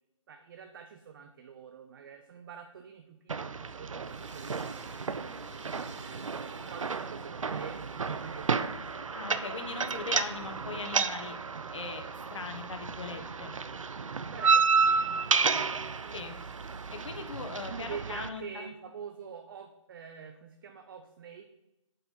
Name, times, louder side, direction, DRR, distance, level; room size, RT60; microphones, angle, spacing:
voice 1, 0.3-5.4 5.9-9.1 14.3-16.2 17.7-21.5, right 7 dB, 40° right, 6 dB, 0.6 m, -46 dB
sound 1, 3.3-18.3, right 5 dB, 85° right, 0.5 m, -31 dB
sound 2, 3.9-18.1, right 4 dB, 65° right, 1.0 m, -53 dB
voice 2, 9.1-11.4 11.7-12.0 12.3-13.5 16.1-16.4 16.9-18.7, left 4 dB, 65° left, 6 dB, 1.3 m, -40 dB
7.9 x 4.6 x 5.5 m, 0.95 s
figure-of-eight pair, 145°, 16 cm